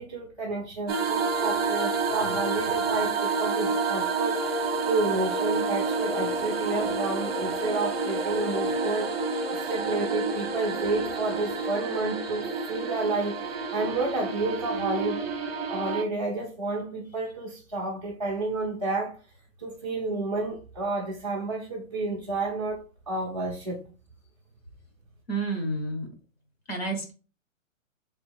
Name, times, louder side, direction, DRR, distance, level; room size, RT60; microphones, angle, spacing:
voice 1, 0.0-9.1 9.5-15.2 15.7-19.1 19.6-23.8, right 3 dB, 25° right, 0.5 m, -31 dB
sound 1, 0.9-16.0, right 3 dB, 45° right, 0.8 m, -29 dB
voice 2, 25.3-26.1 26.7-27.1, right 2 dB, 45° left, 1.2 m, -30 dB
3.6 x 3.5 x 3.3 m
hypercardioid pair, 180°, 41 cm